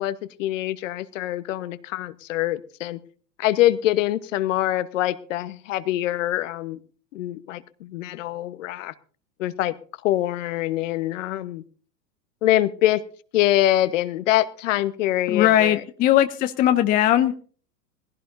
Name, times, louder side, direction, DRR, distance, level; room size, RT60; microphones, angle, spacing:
voice 1, 0.0-3.0 3.4-6.8 7.1-8.9 9.4-9.7 10.0-11.6 12.4-13.0 13.3-15.8, left 14 dB, 50° left, 14 dB, 1.2 m, -24 dB
voice 2, 15.3-17.3, left 12 dB, 20° left, 10 dB, 0.6 m, -19 dB
21.0 x 16.0 x 2.7 m, 0.43 s
figure-of-eight pair, 100°, 49 cm